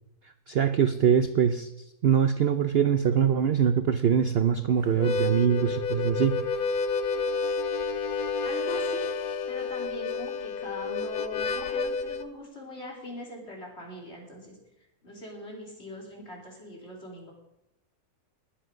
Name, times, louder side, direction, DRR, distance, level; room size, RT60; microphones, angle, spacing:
voice 1, 0.5-1.7 2.0-6.4, right 8 dB, 60° right, 10 dB, 0.6 m, -23 dB
Harmonica, 4.9-12.3, left 4 dB, 70° left, 1.2 m, -30 dB
voice 2, 8.4-9.1 9.5-14.6 15.0-17.3, left 1 dB, 40° left, -1 dB, 3.7 m, -41 dB
20.0 x 8.0 x 6.3 m, 0.91 s
omnidirectional pair, 1.7 m